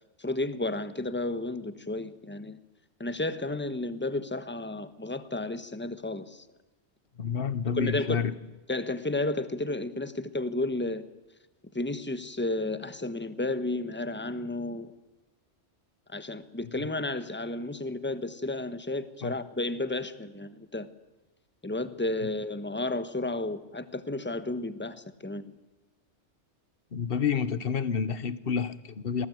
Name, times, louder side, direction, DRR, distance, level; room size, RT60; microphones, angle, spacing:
voice 1, 0.2-2.6 3.0-6.4 7.7-8.2 8.7-11.0 11.7-14.9 16.1-20.9 21.6-25.5, left 2 dB, 10° left, 12 dB, 1.3 m, -32 dB
voice 2, 7.2-8.3 16.8-16.9 19.2-19.3 26.9-29.3, left 6 dB, 55° left, 16 dB, 1.3 m, -29 dB
27.5 x 19.5 x 9.4 m, 1.1 s
omnidirectional pair, 1.2 m